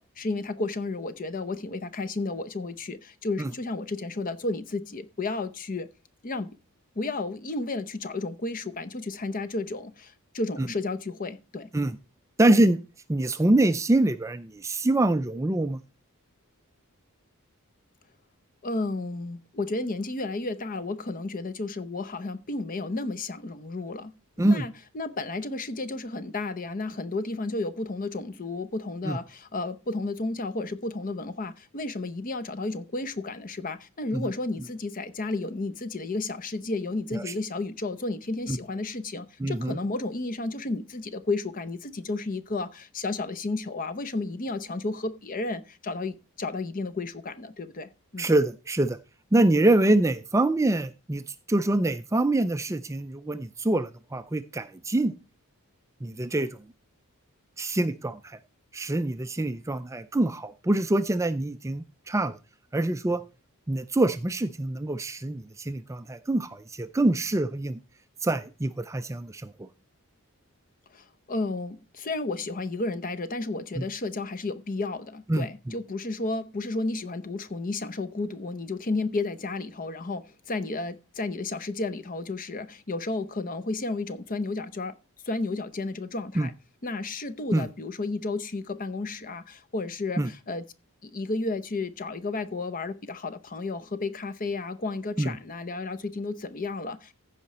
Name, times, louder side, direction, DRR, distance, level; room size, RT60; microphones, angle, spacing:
voice 1, 0.0-5.9 6.2-6.5 7.0-11.7 18.6-24.1 24.4-48.3 70.9-84.9 85.2-86.5 86.8-90.6 91.0-97.1, left 3 dB, 40° left, 0.7 m, -32 dB
voice 2, 12.4-12.8 13.1-15.8 24.4-24.6 29.0-29.2 34.1-34.3 37.1-37.3 38.5-38.6 39.4-39.8 48.2-49.0 49.3-55.1 56.0-56.5 57.6-58.4 58.7-62.4 62.7-63.2 63.7-67.8 68.2-69.7 73.8-73.9 75.3-75.7 86.4-86.5 87.5-87.7 90.2-90.3 95.2-95.3, right 2 dB, 15° right, 0.4 m, -25 dB
15.0 x 5.0 x 4.3 m
head